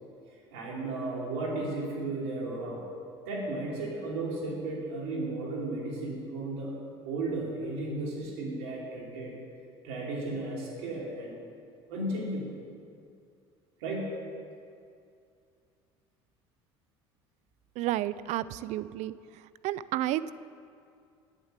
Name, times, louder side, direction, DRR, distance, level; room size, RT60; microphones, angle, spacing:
voice 1, 0.5-2.8 3.3-6.7 7.0-9.4 9.8-11.4 11.9-12.6 13.8-14.1, right 2 dB, 80° right, -3 dB, 3.0 m, -34 dB
voice 2, 17.8-19.1 19.6-20.3, right 14 dB, 60° right, 17 dB, 0.4 m, -31 dB
8.6 x 8.2 x 8.1 m, 2.4 s
supercardioid pair, 80°, 13 cm